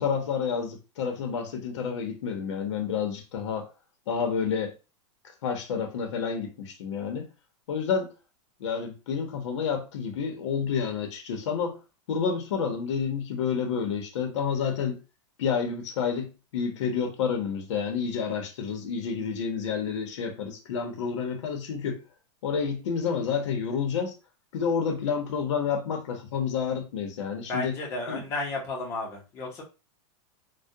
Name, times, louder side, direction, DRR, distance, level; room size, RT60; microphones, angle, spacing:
voice 1, 0.0-3.7 4.1-4.7 5.4-7.3 7.7-8.1 8.6-11.8 12.1-15.0 15.4-22.0 22.4-24.1 24.5-27.8 28.1-28.2, left 6 dB, 80° left, 0.8 m, -29 dB
voice 2, 27.4-29.6, left 2 dB, 15° left, 0.6 m, -33 dB
2.2 x 2.1 x 2.7 m
supercardioid pair, 175°, 15 cm